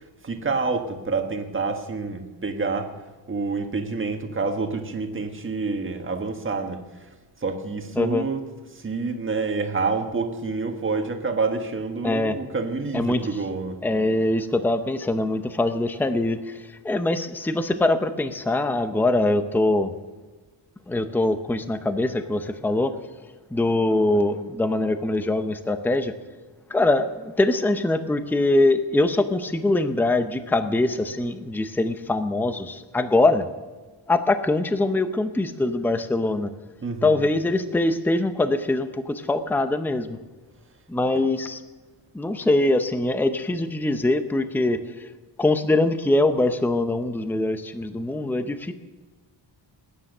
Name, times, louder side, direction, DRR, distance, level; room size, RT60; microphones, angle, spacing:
voice 1, 0.2-2.9 3.3-6.8 7.4-8.4 8.7-13.8 36.8-37.2 41.1-41.2, right 4 dB, 25° right, 5 dB, 1.6 m, -28 dB
voice 2, 8.0-8.3 12.0-12.4 12.9-13.3 13.8-16.6 16.8-19.9 20.9-22.9 23.5-26.1 26.7-33.4 34.1-36.5 37.0-40.2 40.9-41.6 42.1-45.1 45.4-48.7, left 2 dB, 5° left, 9 dB, 0.7 m, -23 dB
20.0 x 10.0 x 6.6 m, 1.2 s
wide cardioid pair, 170°, 46 cm